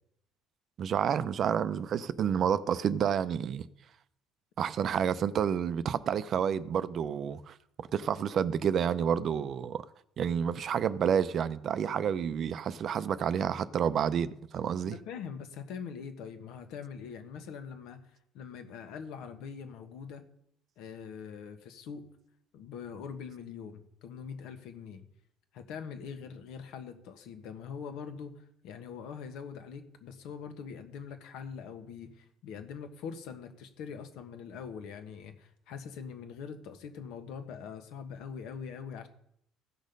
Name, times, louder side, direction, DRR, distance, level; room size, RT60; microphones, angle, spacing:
voice 1, 0.8-3.6 4.6-9.8 10.2-15.0, right 8 dB, 40° right, 0.5 m, -29 dB
voice 2, 14.8-18.1 18.3-20.2 20.8-22.1 22.5-25.0 25.5-39.1, left 6 dB, 75° left, 1.4 m, -43 dB
16.0 x 6.4 x 5.3 m
cardioid pair, 145°, 0 cm